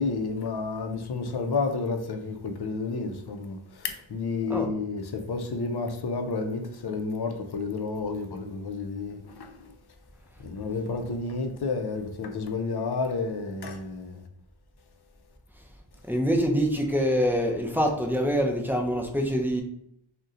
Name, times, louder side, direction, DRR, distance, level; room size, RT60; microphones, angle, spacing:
voice 1, 0.0-9.7 10.4-14.3, left 4 dB, 55° left, 0.5 m, -31 dB
voice 2, 16.1-19.6, equal, 5° right, 0.5 m, -25 dB
2.7 x 2.2 x 3.6 m
wide cardioid pair, 50°, 49 cm